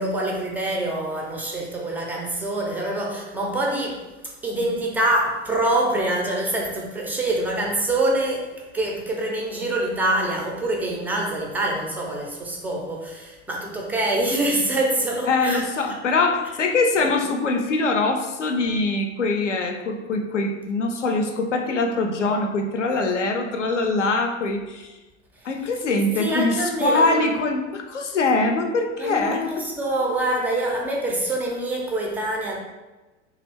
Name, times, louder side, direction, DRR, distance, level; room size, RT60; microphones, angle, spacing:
voice 1, 0.0-16.0 17.0-17.1 25.4-25.8 26.1-27.4 29.0-32.6, right 1 dB, 5° right, -1 dB, 0.3 m, -25 dB
voice 2, 15.3-24.9 25.4-29.4, left 3 dB, 80° left, 4 dB, 0.5 m, -23 dB
3.4 x 2.3 x 3.3 m, 1.1 s
figure-of-eight pair, 75°, 36 cm